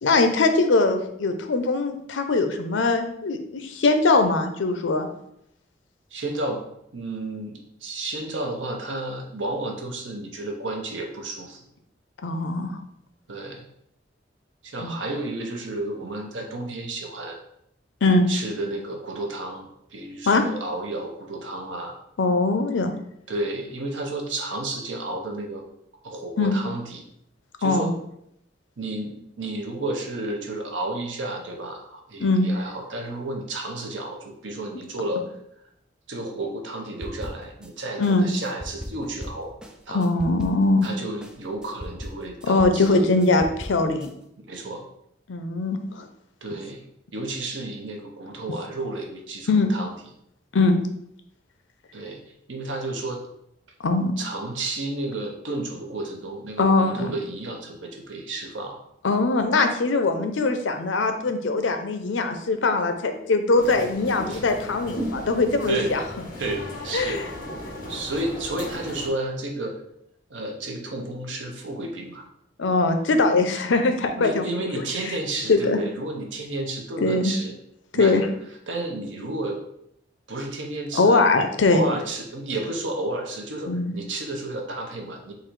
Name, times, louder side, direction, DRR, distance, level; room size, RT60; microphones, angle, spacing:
voice 1, 0.0-5.1 12.2-12.7 14.8-14.9 18.0-18.2 20.3-20.4 22.2-22.9 26.4-26.6 27.6-27.9 32.2-32.5 38.0-38.3 39.9-40.9 42.5-44.1 45.3-46.1 49.5-49.7 50.5-50.8 53.8-54.1 56.6-57.1 59.0-66.0 66.9-67.2 72.6-74.7 75.5-75.8 77.0-77.3 77.9-78.3 80.9-81.8 83.7-83.9, left 3 dB, 85° left, 7 dB, 0.6 m, -21 dB
voice 2, 6.1-6.6 6.9-11.6 13.3-13.6 14.6-17.4 18.3-22.0 23.3-25.7 26.0-27.0 27.6-27.9 28.8-35.3 36.1-39.5 39.9-40.1 40.8-43.1 44.5-44.8 46.4-46.8 47.1-49.9 51.9-52.2 52.5-53.2 54.2-58.8 64.3-64.4 65.7-65.9 66.4-67.2 67.9-69.8 70.3-72.3 74.2-77.5 77.9-78.3 78.7-79.6 80.3-81.2 81.7-85.3, right 2 dB, 90° right, 1 dB, 0.9 m, -32 dB
sound 1, 37.0-37.7 38.0-40.9 41.2-44.1, equal, 5° right, 0.4 m, -38 dB
sound 2, 63.5-69.1, equal, 50° left, 1.0 m, -36 dB
3.9 x 2.7 x 4.5 m, 0.75 s
head